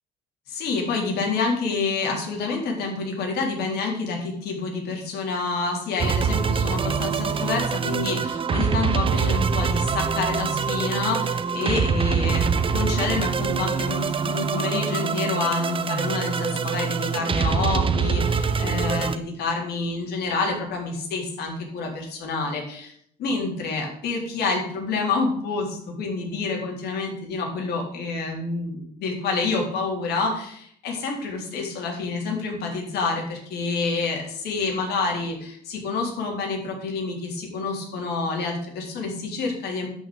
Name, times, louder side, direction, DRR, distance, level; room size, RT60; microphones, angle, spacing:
voice 1, 0.5-22.9 23.2-39.9, left 3 dB, 70° left, 0 dB, 4.0 m, -28 dB
sound 1, 6.0-19.2, right 6 dB, 30° right, 0.8 m, -24 dB
11.0 x 5.8 x 8.8 m, 0.67 s
cardioid pair, 110°, 17 cm